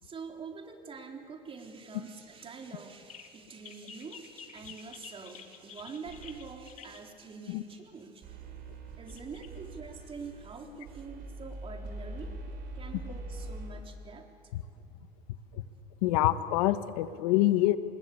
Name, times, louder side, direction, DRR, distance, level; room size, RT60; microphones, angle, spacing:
voice 1, 0.0-8.4 9.0-12.3 12.7-14.3 14.8-15.0 15.5-15.7, right 4 dB, 30° right, 2 dB, 3.8 m, -45 dB
sound 1, 3.1-3.3 3.6-7.0 8.5-8.6 9.1-9.5, left 7 dB, 40° left, 2.1 m, -49 dB
sound 2, 6.0-6.8 8.2-13.7, right 2 dB, 50° right, 5.3 m, -43 dB
voice 2, 16.0-17.8, left 15 dB, 85° left, 11 dB, 1.3 m, -26 dB
29.0 x 21.0 x 8.7 m, 2.4 s
supercardioid pair, 115°, 19 cm